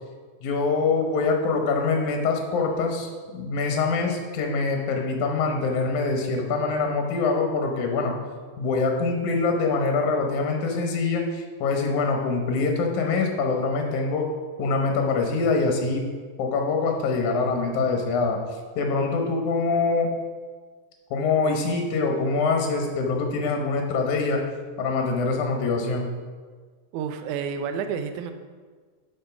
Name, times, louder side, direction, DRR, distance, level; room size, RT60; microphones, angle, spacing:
voice 1, 0.4-8.1 8.6-14.3 14.6-16.1 16.4-18.4 18.8-20.1 21.1-24.4 24.8-26.1, left 4 dB, 80° left, 3 dB, 2.4 m, -24 dB
voice 2, 26.9-28.3, right 6 dB, 85° right, 7 dB, 2.0 m, -30 dB
7.3 x 5.5 x 5.7 m, 1.5 s
omnidirectional pair, 3.4 m